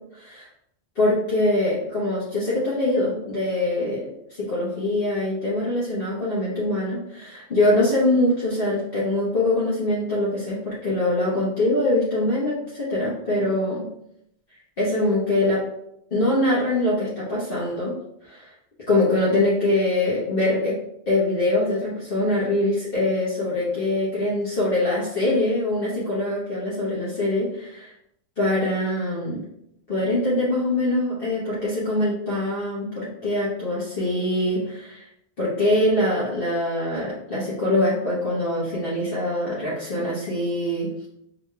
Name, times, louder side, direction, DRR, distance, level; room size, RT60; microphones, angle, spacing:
voice 1, 0.1-0.5 1.0-13.8 14.8-15.6 16.1-17.9 18.3-18.5 18.9-20.8 21.1-27.9 28.4-29.4 29.9-35.1 35.4-41.1, left 1 dB, 60° left, -8 dB, 1.2 m, -23 dB
4.8 x 3.7 x 2.2 m, 0.77 s
omnidirectional pair, 1.1 m